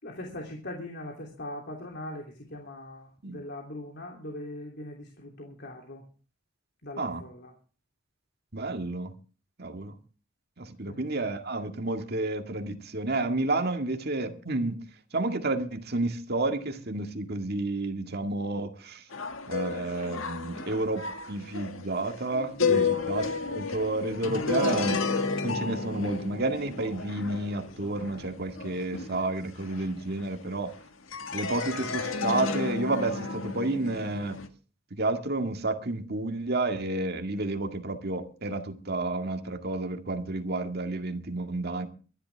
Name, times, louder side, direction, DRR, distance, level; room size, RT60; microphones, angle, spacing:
voice 1, 0.0-6.0 6.8-7.5 10.8-11.3 22.7-22.9, left 1 dB, 55° left, 3.1 m, -40 dB
voice 2, 8.5-9.1 9.6-9.9 10.6-14.8 15.1-19.0 19.5-25.0 25.4-30.7 31.3-34.4 34.9-41.9, right 2 dB, 55° right, 2.0 m, -30 dB
sound 1, 19.1-30.7 31.1-34.5, left 4 dB, 90° left, 1.8 m, -32 dB
23.5 x 11.5 x 3.5 m
head